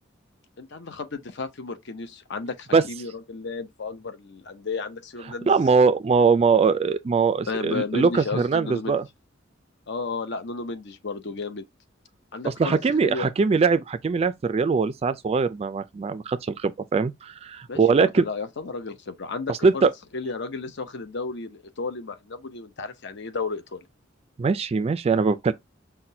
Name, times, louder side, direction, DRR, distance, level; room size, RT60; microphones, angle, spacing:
voice 1, 0.6-5.6 7.5-8.9 9.9-11.6 12.3-13.3 17.7-19.9 20.1-23.8, left 4 dB, 60° left, 0.7 m, -33 dB
voice 2, 5.5-9.1 12.4-18.2 19.5-19.9 24.4-25.5, right 5 dB, 30° right, 0.3 m, -21 dB
5.8 x 2.2 x 2.6 m
head